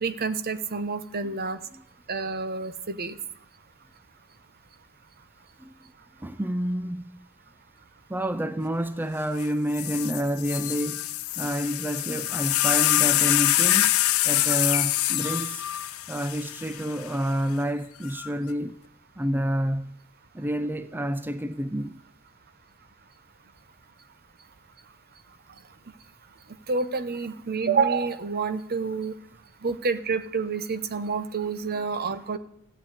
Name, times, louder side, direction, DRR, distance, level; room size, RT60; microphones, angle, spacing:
voice 1, 0.0-1.6 2.1-3.2 26.7-29.1 29.6-32.4, right 4 dB, 45° right, 1.0 m, -28 dB
voice 2, 6.2-7.2 8.1-11.1 11.4-13.9 14.2-15.6 16.1-18.8 19.2-20.0 20.3-22.0, equal, 10° right, 0.4 m, -29 dB
sound 1, 9.4-9.5 9.7-17.1 18.0-18.5, left 14 dB, 70° left, 0.7 m, -25 dB
16.0 x 7.1 x 9.8 m
head